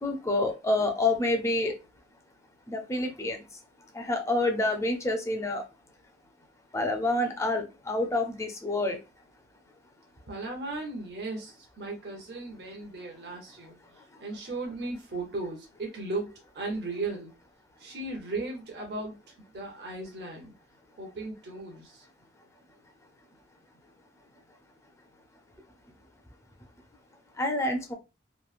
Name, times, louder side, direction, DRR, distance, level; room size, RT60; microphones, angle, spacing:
voice 1, 0.0-1.7 2.7-3.4 3.9-5.6 6.7-9.0 27.4-27.9, left 2 dB, 15° left, 4 dB, 0.5 m, -28 dB
voice 2, 10.3-13.8 14.2-17.3 17.8-20.5 21.0-22.0, right 2 dB, 65° right, 0 dB, 0.8 m, -36 dB
3.0 x 2.7 x 2.4 m, 0.28 s
head